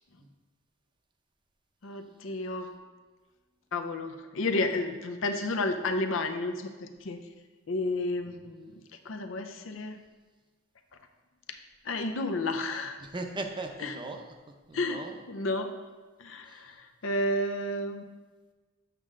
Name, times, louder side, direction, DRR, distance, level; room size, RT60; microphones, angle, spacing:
voice 1, 1.8-2.7 3.7-7.2 7.7-8.7 9.0-10.0 11.8-13.0 13.8-13.9 14.7-15.7 16.2-18.0, left 2 dB, 85° left, 6 dB, 0.6 m, -31 dB
voice 2, 13.0-14.3 14.7-15.2 16.5-16.8, right 2 dB, 25° right, 4 dB, 0.6 m, -38 dB
8.1 x 5.4 x 3.7 m, 1.3 s
head